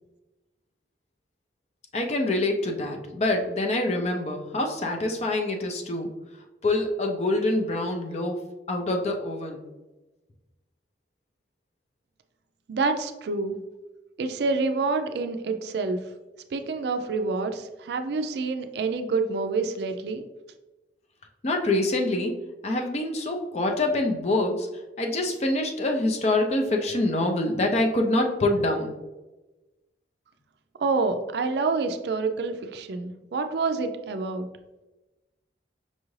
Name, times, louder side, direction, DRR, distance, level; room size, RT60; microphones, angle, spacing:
voice 1, 1.9-6.1 6.6-8.4 8.7-9.6 21.4-22.3 22.6-24.7 25.0-28.9, left 2 dB, 40° left, 3 dB, 0.5 m, -25 dB
voice 2, 12.7-13.6 14.2-16.0 16.5-20.2 30.8-34.5, right 3 dB, 65° right, 7 dB, 0.4 m, -27 dB
5.3 x 2.4 x 3.1 m, 1.1 s
head